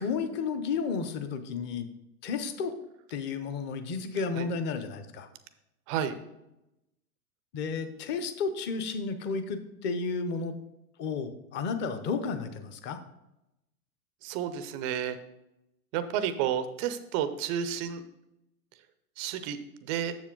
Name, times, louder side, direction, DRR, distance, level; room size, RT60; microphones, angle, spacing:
voice 1, 0.0-1.9 2.2-2.7 3.1-5.3 7.5-10.5 11.0-13.0, left 5 dB, 25° left, 9 dB, 0.7 m, -32 dB
voice 2, 5.9-6.2 14.2-15.2 15.9-18.0 19.2-20.1, right 9 dB, 25° right, 11 dB, 0.4 m, -31 dB
7.3 x 6.8 x 3.7 m, 0.89 s
hypercardioid pair, 120°, 45 cm